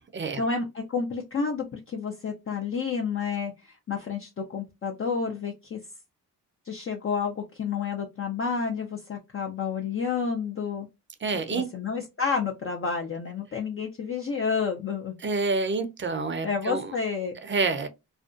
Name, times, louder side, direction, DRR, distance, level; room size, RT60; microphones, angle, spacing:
voice 1, 0.4-5.8 6.7-10.9 11.5-15.1 16.4-17.3, left 5 dB, 40° left, 0.5 m, -30 dB
voice 2, 11.2-11.7 15.2-16.9 17.4-17.9, right 4 dB, 35° right, 0.6 m, -28 dB
2.5 x 2.2 x 2.4 m
cardioid pair, 65°, 36 cm